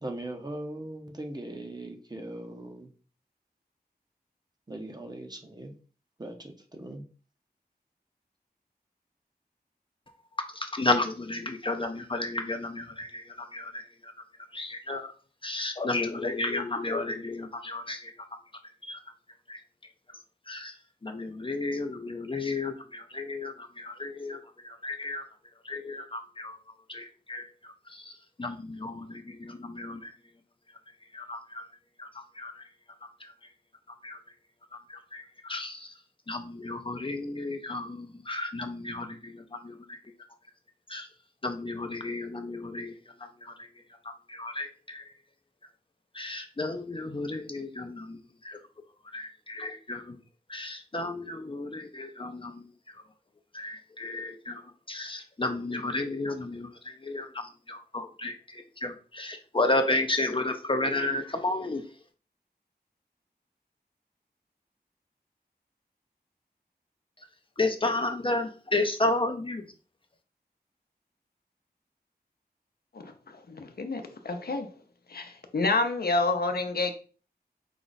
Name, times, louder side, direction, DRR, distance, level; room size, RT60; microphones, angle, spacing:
voice 1, 0.0-2.9 4.7-5.7 6.2-7.1, right 1 dB, 25° right, 0.8 m, -39 dB
voice 2, 10.7-13.2 13.5-13.7 14.5-15.1 15.4-18.0 18.9-19.0 20.5-20.7 21.0-24.4 24.8-25.2 25.7-26.5 26.9-27.4 28.4-30.0 31.1-31.4 32.4-32.5 34.0-34.2 35.1-35.8 36.3-39.2 39.6-39.7 40.9-41.1 41.4-42.9 44.4-44.7 44.9-45.0 46.2-48.2 48.4-48.6 49.1-50.2 50.5-52.5 53.5-54.5 54.9-56.7 57.1-57.3 57.7-58.3 58.8-61.8 67.6-69.6, left 2 dB, 30° left, 0.5 m, -32 dB
voice 3, 72.9-74.7 75.1-76.9, left 3 dB, 65° left, 0.7 m, -29 dB
5.0 x 2.4 x 4.0 m
wide cardioid pair, 85°, 17 cm